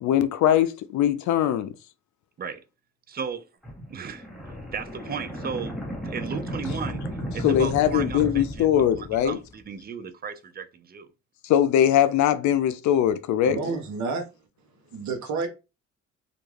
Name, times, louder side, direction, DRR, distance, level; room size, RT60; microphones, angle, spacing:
voice 1, 0.0-1.7 7.4-9.4 11.4-13.6, left 10 dB, 70° left, 0.4 m, -21 dB
voice 2, 3.1-3.4 3.9-4.3 4.7-5.8 6.0-7.0 7.3-11.1, right 6 dB, 30° right, 0.4 m, -35 dB
sound 1, 3.6-9.5, equal, ahead, 0.8 m, -34 dB
voice 3, 13.5-14.3 14.9-15.5, right 4 dB, 65° right, 0.8 m, -29 dB
2.4 x 2.2 x 3.2 m
cardioid pair, 90°, 30 cm